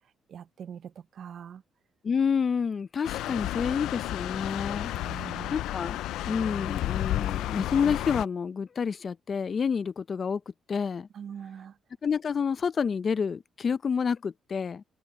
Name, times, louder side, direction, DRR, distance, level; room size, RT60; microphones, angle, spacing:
voice 1, 0.3-1.6 5.0-5.6 11.1-11.7, right 8 dB, 60° right, 0.6 m, -42 dB
voice 2, 2.0-6.0 6.3-10.4 10.7-11.1 12.0-14.8, left 6 dB, 45° left, 0.7 m, -29 dB
sound 1, 3.0-8.3, left 14 dB, 85° left, 0.4 m, -32 dB
cardioid pair, 90°, 0 cm